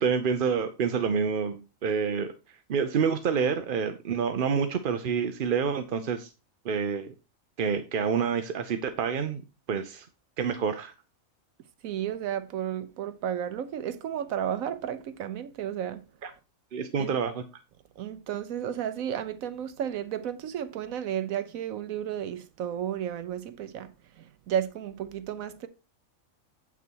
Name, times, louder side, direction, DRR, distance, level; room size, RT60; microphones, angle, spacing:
voice 1, 0.0-2.3 2.7-6.3 6.6-7.1 7.6-9.4 9.7-10.1 10.4-10.9 16.2-16.3 16.7-17.4, right 6 dB, 50° right, 0.7 m, -28 dB
voice 2, 11.8-16.0 17.0-17.2 18.0-23.9 24.2-25.7, right 9 dB, 80° right, 1.1 m, -33 dB
8.2 x 6.1 x 4.5 m
omnidirectional pair, 1.4 m